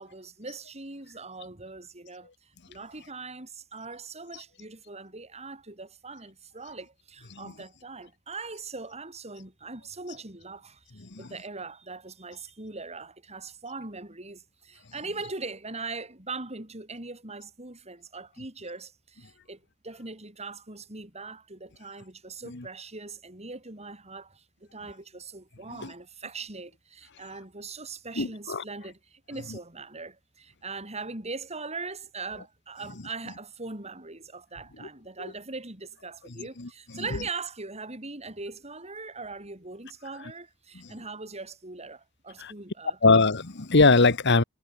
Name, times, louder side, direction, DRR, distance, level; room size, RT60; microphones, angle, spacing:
voice 1, 0.0-43.0, right 3 dB, 30° right, 5.7 m, -41 dB
voice 2, 28.2-28.6 36.6-36.7 42.4-42.5 43.0-44.4, left 3 dB, 55° left, 1.5 m, -21 dB
head